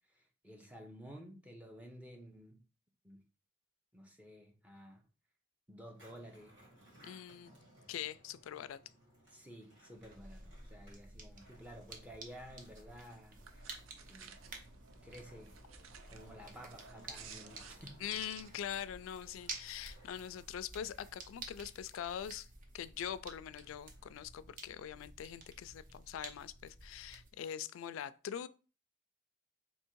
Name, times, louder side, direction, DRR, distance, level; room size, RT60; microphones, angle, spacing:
voice 1, 0.1-2.6 3.0-3.2 3.9-5.0 5.7-6.5 9.3-13.8 14.1-14.4 15.0-15.6 16.1-18.0, equal, 5° right, 0.6 m, -53 dB
Skateboard, 5.8-24.5, right 1 dB, 60° right, 2.3 m, -64 dB
voice 2, 7.0-7.5 7.9-8.8 18.0-22.5 22.7-28.5, left 9 dB, 80° left, 0.3 m, -43 dB
sound 1, 10.0-27.3, right 3 dB, 40° right, 0.7 m, -52 dB
sound 2, 13.0-18.5, right 7 dB, 90° right, 0.5 m, -56 dB
3.5 x 2.8 x 4.5 m
head